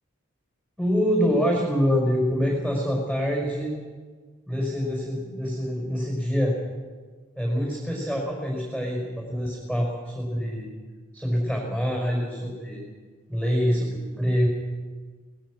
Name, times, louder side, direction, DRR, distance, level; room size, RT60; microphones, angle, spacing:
voice 1, 0.8-3.7 4.5-6.6 7.4-10.7 11.1-12.8 13.3-14.5, equal, 5° right, -1 dB, 5.2 m, -25 dB
24.5 x 20.0 x 6.4 m, 1.5 s
head